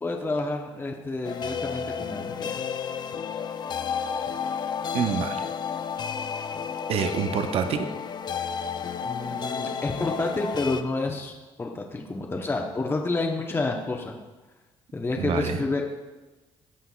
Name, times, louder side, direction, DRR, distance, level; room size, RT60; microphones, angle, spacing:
voice 1, 0.0-2.6 9.0-11.3 11.6-14.1 14.9-15.9, left 3 dB, 20° left, 1 dB, 0.9 m, -29 dB
sound 1, 1.2-10.8, left 6 dB, 45° left, 0.4 m, -32 dB
voice 2, 4.9-5.5 6.9-7.9 15.2-15.6, right 7 dB, 70° right, 8 dB, 0.6 m, -26 dB
14.0 x 5.8 x 2.3 m, 1.2 s
cardioid pair, 85°, 10 cm